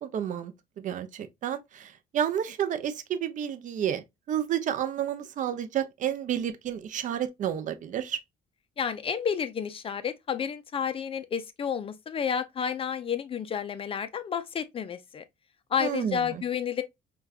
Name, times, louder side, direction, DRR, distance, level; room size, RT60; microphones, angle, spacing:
voice 1, 0.0-8.2 15.8-16.4, right 9 dB, 50° right, 0.5 m, -31 dB
voice 2, 8.8-15.2 15.7-16.8, left 7 dB, 35° left, 0.4 m, -30 dB
4.6 x 2.2 x 2.3 m
cardioid pair, 110°, 17 cm